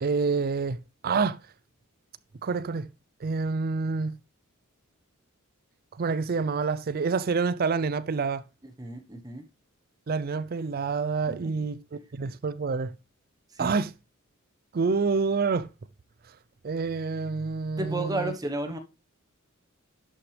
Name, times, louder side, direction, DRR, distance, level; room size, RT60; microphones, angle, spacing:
voice 1, 0.0-1.4 2.4-2.9 3.2-4.2 6.0-8.4 10.1-12.9 13.6-13.9 14.7-15.7 16.6-18.3, right 4 dB, 45° right, 0.4 m, -27 dB
voice 2, 8.8-9.4 11.4-11.5 13.6-13.7 17.8-18.8, right 2 dB, 15° right, 1.0 m, -32 dB
11.5 x 6.0 x 3.2 m
head